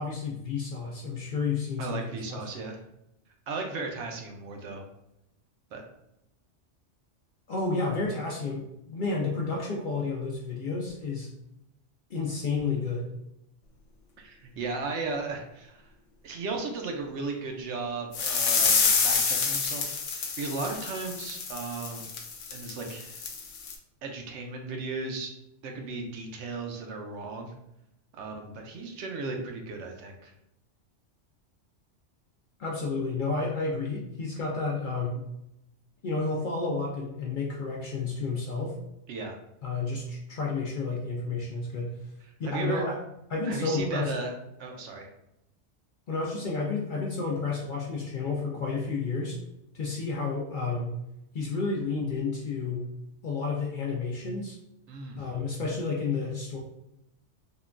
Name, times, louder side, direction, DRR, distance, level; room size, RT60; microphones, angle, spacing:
voice 1, 0.0-2.4 7.5-11.3 12.1-13.1 32.6-35.2 36.0-38.8 39.6-41.9 42.4-43.0 43.3-44.1 46.1-49.4 49.7-51.0 51.3-52.9 53.2-54.6 55.2-56.6, left 4 dB, 60° left, -2 dB, 0.5 m, -31 dB
voice 2, 1.8-2.8 3.5-4.8 5.7-5.8 14.2-15.9 16.2-22.1 22.5-23.2 24.0-25.3 25.6-27.5 28.2-30.3 39.1-39.4 42.4-42.8 43.5-44.3 44.6-45.1 54.9-55.2, right 3 dB, 75° right, 2 dB, 0.9 m, -35 dB
sound 1, 18.1-23.7, left 5 dB, 90° left, 0.9 m, -28 dB
3.6 x 2.2 x 2.4 m, 0.83 s
omnidirectional pair, 1.2 m